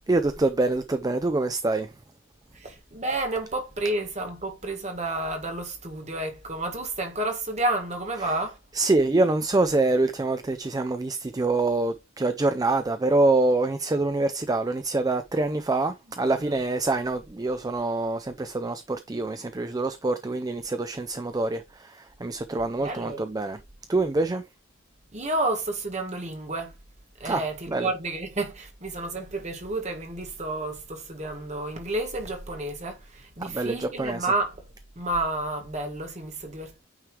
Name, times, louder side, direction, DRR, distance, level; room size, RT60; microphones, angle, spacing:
voice 1, 0.1-1.9 8.2-8.3 8.7-23.6 23.9-24.4 27.2-27.9 33.4-34.3, right 2 dB, 20° right, 0.4 m, -25 dB
voice 2, 2.5-8.6 16.4-16.6 22.8-23.2 25.1-26.7 27.2-34.6 34.9-36.8, right 2 dB, 35° right, 1.7 m, -30 dB
9.1 x 3.1 x 4.8 m
head